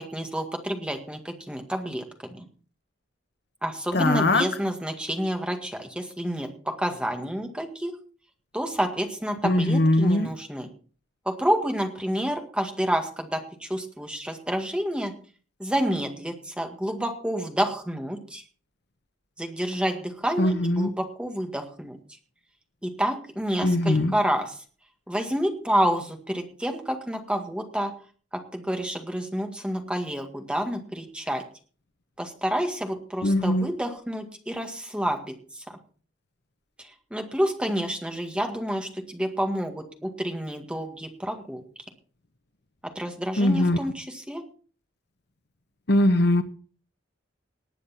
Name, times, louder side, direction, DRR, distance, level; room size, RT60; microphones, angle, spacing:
voice 1, 0.0-2.0 2.3-2.4 3.6-7.9 8.5-10.7 11.3-15.1 15.6-18.4 19.4-22.0 22.8-24.6 25.1-27.9 28.3-31.4 32.2-35.6 36.8-41.6 43.0-44.4, equal, 5° right, 4 dB, 1.9 m, -29 dB
voice 2, 3.9-4.4 9.4-10.3 20.4-20.9 23.6-24.1 33.2-33.7 43.4-43.8 45.9-46.4, left 1 dB, 55° left, 10 dB, 1.0 m, -21 dB
19.5 x 8.5 x 4.3 m, 0.40 s
head